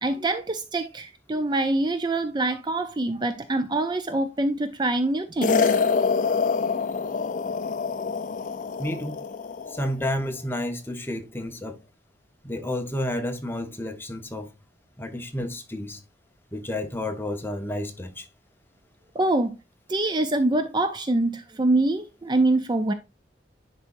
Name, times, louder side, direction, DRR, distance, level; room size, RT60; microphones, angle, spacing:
voice 1, 0.0-5.8 19.1-19.6 19.9-22.9, right 2 dB, 25° right, 0.4 m, -25 dB
sound 1, 5.4-9.9, left 5 dB, 45° left, 0.4 m, -25 dB
voice 2, 8.8-9.2 9.7-11.8 12.4-14.5 15.0-16.0 16.5-18.3, left 1 dB, 10° left, 0.9 m, -31 dB
10.0 x 4.1 x 2.6 m
head